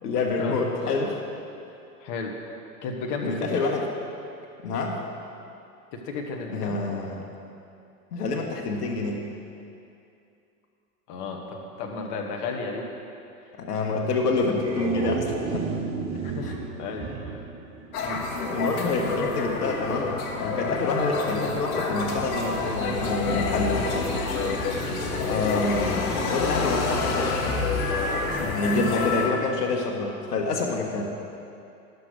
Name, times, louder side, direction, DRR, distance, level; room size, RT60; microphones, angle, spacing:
voice 1, 0.0-1.2 3.2-3.9 4.6-5.0 6.5-7.2 8.1-9.2 13.6-15.7 16.4-16.5 18.5-20.1 20.4-23.8 25.2-27.5 28.4-31.0, left 3 dB, 80° left, 1 dB, 1.5 m, -27 dB
voice 2, 2.0-2.4 2.8-3.6 5.9-6.8 11.1-12.9 16.2-17.5 18.0-18.2 25.4-25.7 28.9-29.3, left 4 dB, 40° left, 1 dB, 1.6 m, -34 dB
sound 1, 14.4-18.6, right 5 dB, 15° right, 0.4 m, -33 dB
sound 2, 17.9-29.3, left 3 dB, 60° left, 1.8 m, -28 dB
11.5 x 6.9 x 6.3 m, 2.6 s
hypercardioid pair, 110°, 46 cm